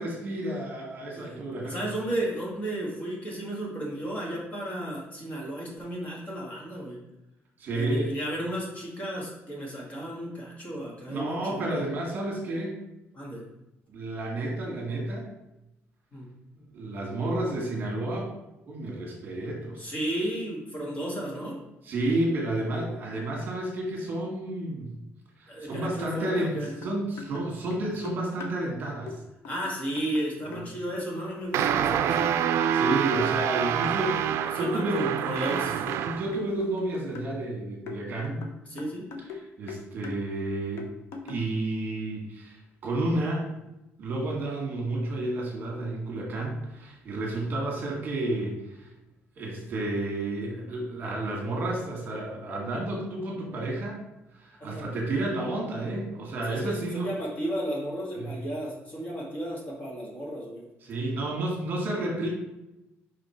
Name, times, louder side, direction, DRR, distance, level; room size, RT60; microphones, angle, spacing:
voice 1, 0.0-1.8 7.6-8.1 11.1-12.7 13.9-15.3 16.6-18.3 18.7-19.9 21.8-24.9 25.4-26.5 26.8-29.1 30.5-30.6 32.5-35.1 36.0-38.4 39.2-40.9 41.2-43.5 44.0-48.9 49.4-54.0 54.3-57.1 58.2-58.3 60.8-62.3, right 2 dB, 40° right, -1 dB, 1.8 m, -31 dB
voice 2, 1.6-7.0 7.7-11.8 13.1-13.4 16.1-16.2 19.8-21.6 25.5-26.7 29.5-32.3 34.5-35.9 38.7-39.1 54.6-54.9 56.5-60.6, right 1 dB, 30° left, -3 dB, 1.9 m, -33 dB
sound 1, 26.2-26.4 26.6-28.6 29.1-29.2 29.4-30.6 31.3-31.4 32.0-32.2 32.6-34.0 34.3-37.4 37.9-39.4 39.7-40.2 40.8-41.5, left 5 dB, 65° left, 0.9 m, -41 dB
sound 2, 31.5-36.4, right 9 dB, 70° right, 0.4 m, -26 dB
5.5 x 5.1 x 4.4 m, 0.92 s
cardioid pair, 170°, 5 cm